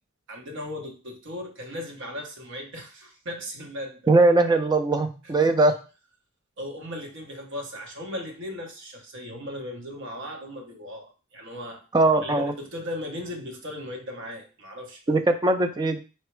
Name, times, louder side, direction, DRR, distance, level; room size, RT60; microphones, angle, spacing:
voice 1, 0.3-4.0 5.2-5.3 6.6-11.8 12.2-15.1, left 1 dB, 60° right, 1 dB, 1.0 m, -37 dB
voice 2, 4.1-5.8 11.9-12.5 15.1-16.0, right 2 dB, 20° right, 7 dB, 0.4 m, -20 dB
4.4 x 2.0 x 4.5 m, 0.33 s
head